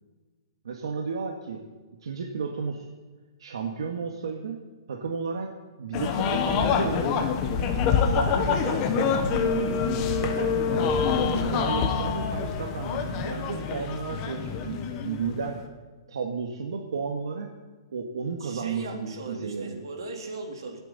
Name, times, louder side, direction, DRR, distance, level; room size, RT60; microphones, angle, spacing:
voice 1, 0.6-1.6 2.0-2.9 3.4-4.6 4.9-5.5 5.8-7.3 8.0-15.6 16.1-17.5 17.9-19.8, right 5 dB, 85° right, 1 dB, 1.8 m, -33 dB
sound 1, 5.9-15.7, left 6 dB, 20° left, 1.1 m, -26 dB
voice 2, 18.4-20.8, right 2 dB, 70° right, 1 dB, 3.7 m, -38 dB
26.0 x 9.1 x 4.3 m, 1.3 s
hypercardioid pair, 180°, 3 cm